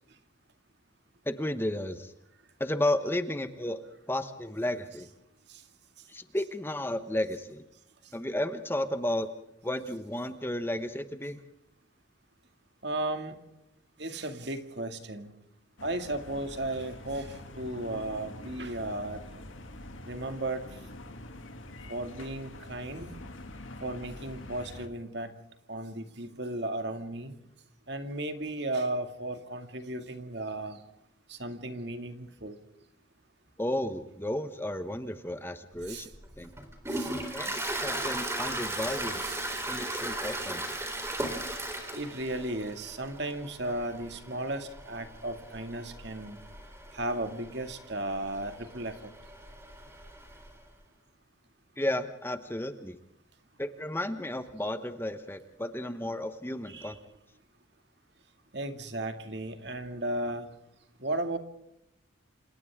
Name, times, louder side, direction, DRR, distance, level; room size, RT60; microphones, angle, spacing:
voice 1, 1.3-2.1 2.6-3.8 4.1-5.1 6.1-7.6 8.1-9.3 9.6-11.4 33.6-36.1 36.4-36.5 37.3-39.2 39.7-40.8 51.8-53.0 53.6-57.0, left 1 dB, 10° left, 9 dB, 1.0 m, -33 dB
voice 2, 12.8-13.3 14.0-15.3 15.8-19.2 20.1-20.6 21.9-23.1 23.8-25.3 25.7-27.3 27.9-30.8 31.3-32.6 35.9-36.1 36.9-37.1 39.2-39.4 41.9-46.4 46.9-49.0 56.7-57.0 58.5-60.5 61.0-61.4, right 1 dB, 55° right, 7 dB, 2.3 m, -35 dB
sound 1, 15.8-24.9, left 1 dB, 80° left, 2.7 m, -45 dB
Toilet flush, 35.9-50.6, right 1 dB, 15° right, 3.7 m, -37 dB
28.5 x 27.5 x 3.6 m, 0.83 s
head